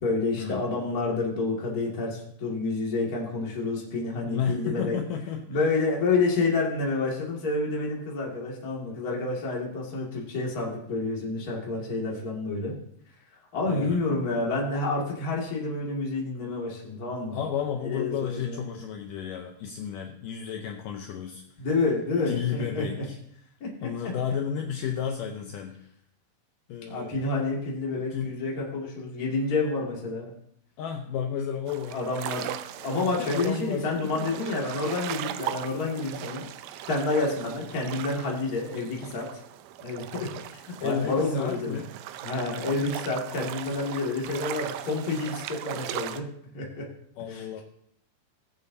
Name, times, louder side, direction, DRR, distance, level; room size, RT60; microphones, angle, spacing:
voice 1, 0.0-5.0 5.5-12.7 13.5-17.4 17.8-18.6 21.6-23.0 23.6-23.7 24.0-24.1 26.9-30.3 31.9-32.5 32.8-36.4 36.9-39.4 39.8-41.8 42.2-46.2 46.5-46.8 47.3-47.6, left 3 dB, 30° left, -3 dB, 2.0 m, -29 dB
voice 2, 4.3-5.7 13.7-14.1 17.3-21.7 22.3-23.4 23.8-25.8 26.7-27.2 28.0-28.3 30.8-32.0 33.0-34.5 40.8-41.9 47.2-47.6, left 8 dB, 75° left, 3 dB, 2.1 m, -33 dB
sound 1, 31.7-46.2, right 12 dB, 80° right, 2.3 m, -38 dB
20.0 x 7.5 x 2.7 m, 0.69 s
omnidirectional pair, 4.2 m